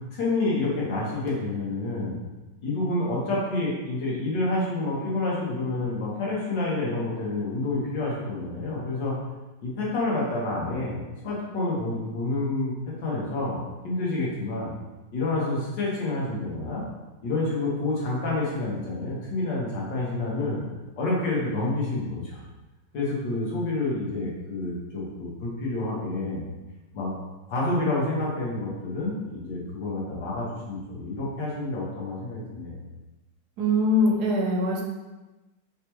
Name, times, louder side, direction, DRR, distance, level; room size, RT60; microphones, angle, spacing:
voice 1, 0.1-2.2 2.6-9.1 9.6-12.7 13.0-13.6 13.8-14.7 15.1-16.8 17.2-20.6 21.0-22.4 22.9-26.4 26.9-27.1 27.5-32.8, left 2 dB, 70° left, -5 dB, 1.9 m, -28 dB
voice 2, 33.6-34.8, left 1 dB, 65° right, 0 dB, 1.2 m, -22 dB
4.9 x 3.4 x 3.0 m, 1.1 s
omnidirectional pair, 2.1 m